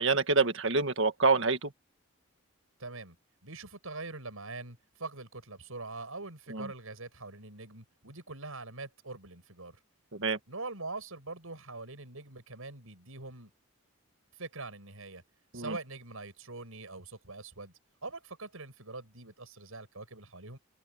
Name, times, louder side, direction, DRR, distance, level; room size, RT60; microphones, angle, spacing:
voice 1, 0.0-1.7 6.5-6.7 10.1-10.4 15.5-15.8, right 4 dB, 65° right, 1.8 m, -27 dB
voice 2, 2.8-3.2 3.4-9.8 10.5-13.5 14.4-15.2 15.5-17.7 18.0-20.6, right 3 dB, 80° right, 6.1 m, -43 dB
head